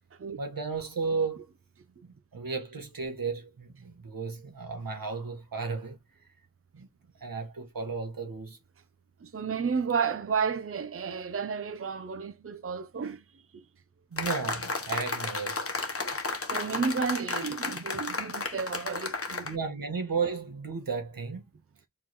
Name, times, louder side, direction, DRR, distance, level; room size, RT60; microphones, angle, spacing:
voice 1, 0.4-1.5 2.0-6.3 6.7-6.9 7.2-8.6 14.1-15.7 19.4-21.4, right 5 dB, 85° right, 1.5 m, -34 dB
voice 2, 9.2-13.2 13.5-13.6 16.5-19.5, right 5 dB, 40° right, 0.6 m, -32 dB
sound 1, 14.2-19.5, left 3 dB, 45° left, 1.0 m, -33 dB
4.7 x 3.7 x 3.0 m
wide cardioid pair, 75°, 33 cm